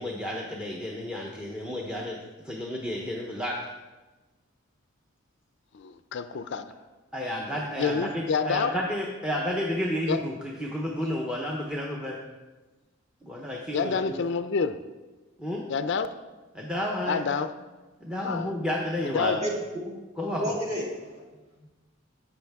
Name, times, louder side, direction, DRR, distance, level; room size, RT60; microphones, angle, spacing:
voice 1, 0.0-2.2 2.4-3.6 7.1-10.3 10.6-12.2 13.2-14.2 15.4-15.6 16.5-17.2 18.0-19.4 20.2-20.5, left 1 dB, 5° right, -1 dB, 0.7 m, -31 dB
voice 2, 5.7-6.7 7.8-8.7 10.1-10.2 13.7-14.8 15.7-16.1 17.1-17.5 18.2-18.5 19.0-19.4, left 5 dB, 55° left, 10 dB, 0.4 m, -28 dB
voice 3, 19.4-19.9 20.2-21.2 21.6-21.7, equal, 35° right, -3 dB, 2.3 m, -32 dB
12.0 x 8.0 x 3.5 m, 1.2 s
head